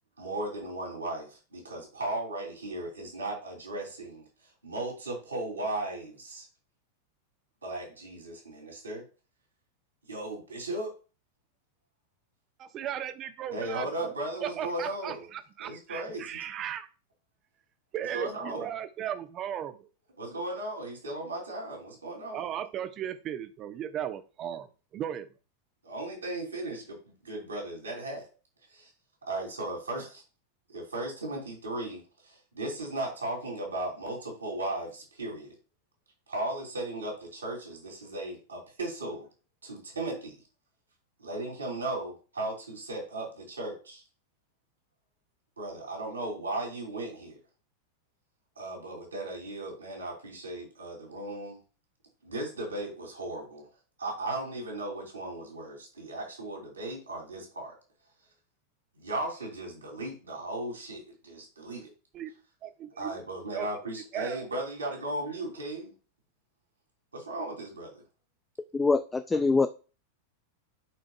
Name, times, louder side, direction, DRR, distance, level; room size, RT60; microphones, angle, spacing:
voice 1, 0.2-4.2 4.6-6.5 7.6-9.0 10.1-10.9 13.5-15.3 15.6-16.4 18.1-18.6 20.2-22.4 25.8-27.0 27.2-28.3 28.7-28.9 29.3-30.2 30.7-35.5 36.3-39.3 39.6-40.3 41.2-44.0 45.6-47.4 48.6-51.6 52.2-53.7 54.0-57.7 58.9-61.9 63.0-65.9 67.1-68.0, right 2 dB, 75° right, 3.2 m, -36 dB
voice 2, 12.6-14.1 14.4-16.9 17.9-19.9 22.3-24.7 24.9-25.3 62.1-62.3 62.6-63.2 63.5-64.4, right 10 dB, 30° right, 0.8 m, -36 dB
voice 3, 68.7-69.7, left 4 dB, 10° left, 0.4 m, -24 dB
11.0 x 5.0 x 2.4 m
figure-of-eight pair, 90°, 0 cm